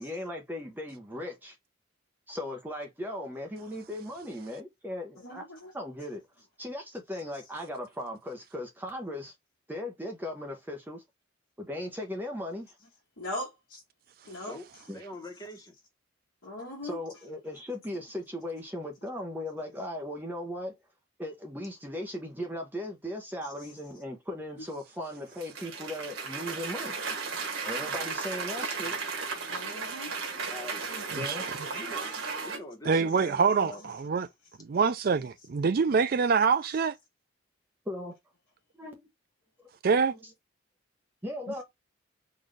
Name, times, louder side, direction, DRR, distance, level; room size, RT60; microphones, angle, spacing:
voice 1, 0.0-1.5 2.3-5.4 5.7-6.2 6.6-9.3 9.7-11.0 11.6-12.7 14.9-15.0 16.8-20.7 21.2-27.0 27.6-29.0 31.2-31.4 37.9-38.2 38.8-39.0 41.2-41.6, left 1 dB, 10° right, 0.8 m, -37 dB
voice 2, 5.2-5.7 13.2-13.8 14.2-14.6 16.4-17.0 23.4-23.7 24.6-24.7 29.5-30.1 31.0-31.1 31.4-31.5 35.9-36.0 41.5-41.6, left 1 dB, 75° left, 1.3 m, -40 dB
voice 3, 14.9-15.7 30.5-30.9 31.6-32.1 32.4-33.8, left 1 dB, 20° left, 1.0 m, -43 dB
Cheering / Applause, 25.4-32.6, right 4 dB, 85° right, 1.4 m, -35 dB
voice 4, 32.9-34.3 34.6-36.9 39.8-40.1, right 5 dB, 45° right, 0.4 m, -25 dB
3.9 x 2.5 x 3.2 m
head